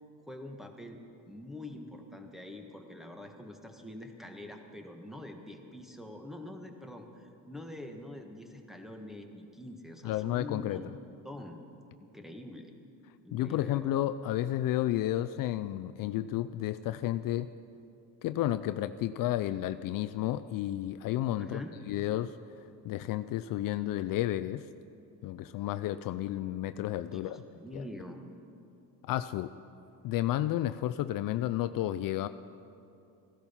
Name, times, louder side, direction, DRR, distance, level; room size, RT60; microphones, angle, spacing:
voice 1, 0.3-1.0 1.3-10.9 11.2-11.6 12.0-12.7 13.2-13.9 21.4-21.8 27.0-28.2, left 1 dB, ahead, 4 dB, 1.6 m, -45 dB
voice 2, 10.0-10.8 13.3-17.5 18.2-21.6 21.9-22.4 22.8-24.6 25.2-27.4 27.7-27.8 29.0-29.5 30.0-32.3, left 13 dB, 60° left, 12 dB, 0.5 m, -31 dB
15.5 x 12.0 x 5.7 m, 2.6 s
supercardioid pair, 85°, 38 cm